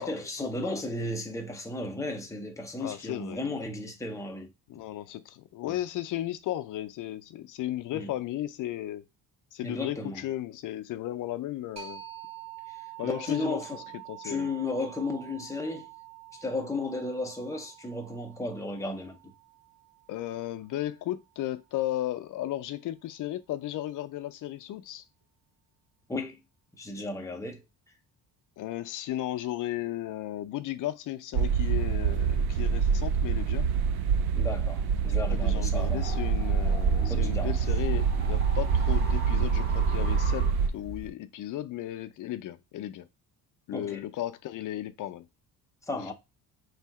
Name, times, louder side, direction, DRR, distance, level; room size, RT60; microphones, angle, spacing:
voice 1, 0.0-4.5 5.7-5.8 7.9-8.1 9.6-10.2 13.0-13.8 14.2-15.9 16.4-19.2 26.1-26.4 26.7-27.6 34.3-36.0 37.0-37.6 43.7-44.0 45.9-46.1, left 2 dB, 10° left, 0.6 m, -34 dB
voice 2, 2.8-3.4 4.7-9.0 9.5-12.0 13.0-14.5 20.1-25.0 28.6-33.7 35.3-40.5 40.7-43.0 43.7-45.3, left 13 dB, 55° left, 0.5 m, -35 dB
sound 1, 11.8-21.1, right 13 dB, 45° right, 1.6 m, -47 dB
sound 2, 31.3-40.7, right 6 dB, 75° right, 0.6 m, -26 dB
sound 3, 35.7-41.1, left 1 dB, 25° right, 1.0 m, -36 dB
3.3 x 2.8 x 4.5 m
cardioid pair, 155°, 38 cm